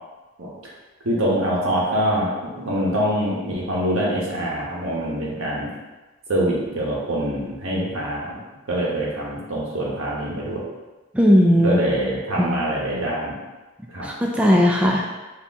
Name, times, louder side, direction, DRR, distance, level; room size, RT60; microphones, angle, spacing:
voice 1, 1.0-2.3 2.5-5.7 6.3-8.4 8.7-10.6 11.6-13.3 13.9-14.1, right 1 dB, 75° right, -5 dB, 1.2 m, -24 dB
voice 2, 11.1-11.8 12.4-12.5 14.0-15.2, equal, 5° right, -1 dB, 0.3 m, -17 dB
4.3 x 2.8 x 3.5 m, 1.2 s
head